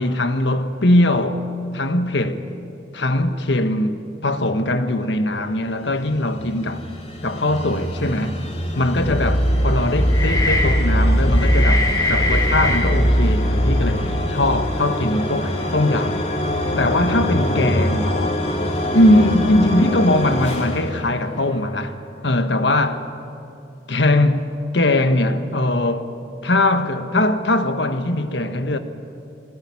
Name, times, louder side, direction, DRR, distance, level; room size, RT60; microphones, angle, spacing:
voice 1, 0.0-1.4 1.7-2.4 2.9-6.8 7.2-8.4 8.7-16.2 16.8-18.4 18.9-22.0 22.2-23.0 23.9-24.4 24.7-26.1 26.4-28.8, left 1 dB, 75° left, 1.4 m, -20 dB
sound 1, 5.8-21.9, left 1 dB, 35° left, 2.8 m, -26 dB
sound 2, 9.0-14.3, equal, 20° left, 2.5 m, -19 dB
22.0 x 18.0 x 9.9 m
head